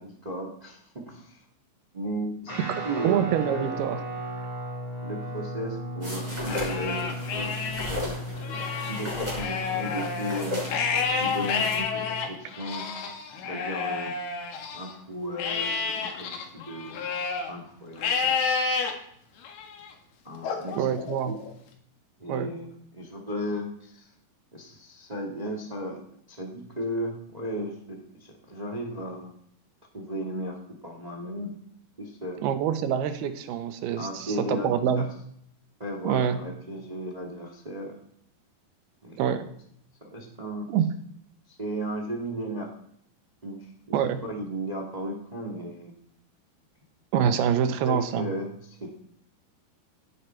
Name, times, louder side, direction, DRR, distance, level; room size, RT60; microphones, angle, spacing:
voice 1, 0.0-1.4 1.9-3.8 5.0-10.6 11.1-12.9 13.4-14.1 14.7-17.1 17.5-18.4 20.2-21.3 22.2-24.1 24.5-26.0 26.3-29.3 29.9-31.5 32.0-32.4 34.0-35.0 35.8-37.9 39.0-39.2 40.1-40.7 41.5-42.7 43.4-43.9 44.2-45.9 47.8-48.9, right 1 dB, 40° right, 1 dB, 0.5 m, -35 dB
Guitar, 2.5-12.3, equal, 10° left, 3.8 m, -36 dB
voice 2, 3.0-4.0 20.8-21.3 22.3-22.5 32.4-35.1 36.0-36.4 39.2-39.5 40.7-40.9 43.9-44.2 47.1-48.3, right 8 dB, 80° right, 9 dB, 2.9 m, -26 dB
sound 1, 6.0-11.8, left 1 dB, 5° right, 5.6 m, -36 dB
Livestock farm animals working animals, 6.3-7.9 8.4-14.9 15.4-17.5 18.0-18.9 19.4-19.9 20.4-21.5, left 5 dB, 80° left, 3.5 m, -30 dB
16.5 x 8.4 x 4.5 m, 0.68 s
omnidirectional pair, 4.5 m